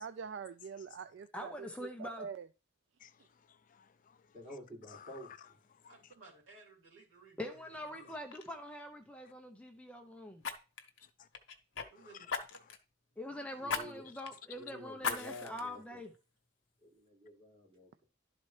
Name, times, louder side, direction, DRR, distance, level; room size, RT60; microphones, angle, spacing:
voice 1, 0.0-2.5, right 6 dB, 60° right, 0.3 m, -45 dB
voice 2, 1.3-2.3 7.4-10.4 13.2-16.1, left 1 dB, 5° left, 0.6 m, -44 dB
voice 3, 3.0-4.2 4.9-5.4 5.7-6.1 8.0-8.1 11.0-11.3 11.9-12.2 12.7-12.8, left 8 dB, 40° left, 0.4 m, -57 dB
voice 4, 4.3-5.6 13.6-14.0 14.5-16.0 16.8-18.0, left 1 dB, 35° right, 5.0 m, -50 dB
voice 5, 5.9-8.2 11.9-12.6, right 3 dB, 90° right, 2.9 m, -58 dB
Fire, 7.7-7.9 8.3-8.5 10.4-11.9 12.3-12.8 13.7-13.8 14.3-14.4 15.0-15.6 16.1-16.2, left 5 dB, 70° left, 1.0 m, -38 dB
11.5 x 4.2 x 3.2 m
head